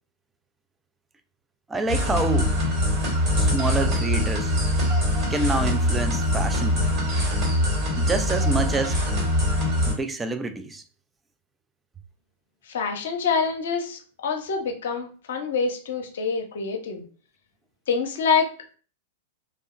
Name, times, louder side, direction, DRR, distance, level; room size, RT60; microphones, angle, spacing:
voice 1, 1.7-2.6 3.4-4.6 5.3-6.8 8.0-9.0 9.9-10.8, right 3 dB, 15° right, 0.3 m, -27 dB
sound 1, 1.9-9.9, left 1 dB, 40° right, 1.2 m, -23 dB
voice 2, 12.7-17.0 17.9-18.5, left 5 dB, 60° left, 0.6 m, -26 dB
2.7 x 2.2 x 2.4 m
figure-of-eight pair, 95°, 0 cm